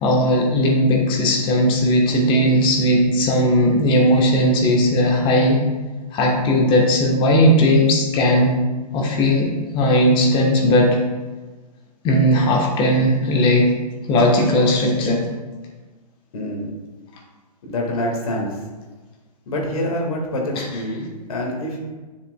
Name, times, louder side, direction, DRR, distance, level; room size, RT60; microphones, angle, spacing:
voice 1, 0.0-5.6 6.1-8.6 8.9-11.0 12.0-13.7 14.1-15.3 20.6-20.7, equal, 25° left, 1 dB, 1.2 m, -17 dB
voice 2, 16.3-16.7 17.6-18.5 19.5-21.9, left 1 dB, 60° left, 0 dB, 1.9 m, -26 dB
8.9 x 7.3 x 2.3 m, 1.3 s
figure-of-eight pair, 125°, 21 cm